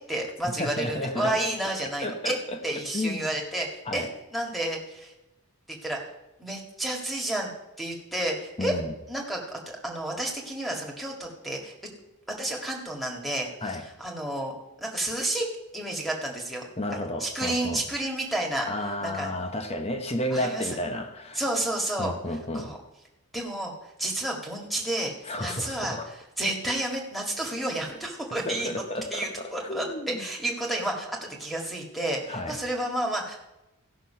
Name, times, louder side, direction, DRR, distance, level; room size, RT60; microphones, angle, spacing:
voice 1, 0.1-2.4 2.6-5.1 5.7-6.0 6.4-7.5 7.8-8.7 9.1-11.7 12.4-15.5 15.7-16.7 17.2-18.7 19.0-19.3 20.3-20.7 21.3-22.1 22.5-22.8 23.3-23.7 24.0-28.7 29.1-33.4, right 1 dB, ahead, -2 dB, 1.8 m, -31 dB
voice 2, 0.6-1.4 2.0-2.6 2.9-3.4 3.9-4.1 8.6-8.9 13.6-13.8 16.8-17.8 18.7-21.4 22.0-22.7 25.3-26.1 28.5-30.3 32.3-32.6, left 1 dB, 25° left, 6 dB, 1.1 m, -32 dB
15.5 x 6.1 x 5.6 m, 0.95 s
head